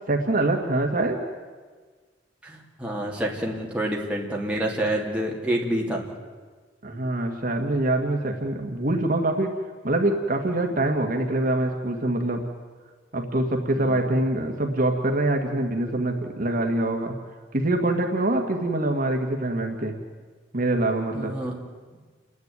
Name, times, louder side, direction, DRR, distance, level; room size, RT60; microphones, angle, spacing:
voice 1, 0.1-1.2 6.8-9.5 9.8-12.5 13.1-17.2 17.5-20.0 20.5-21.4, right 2 dB, 50° right, 3 dB, 1.8 m, -24 dB
voice 2, 2.4-6.1 10.7-10.8 13.5-14.0 21.1-21.5, right 1 dB, 5° right, -2 dB, 3.0 m, -28 dB
29.0 x 10.5 x 9.6 m, 1.5 s
head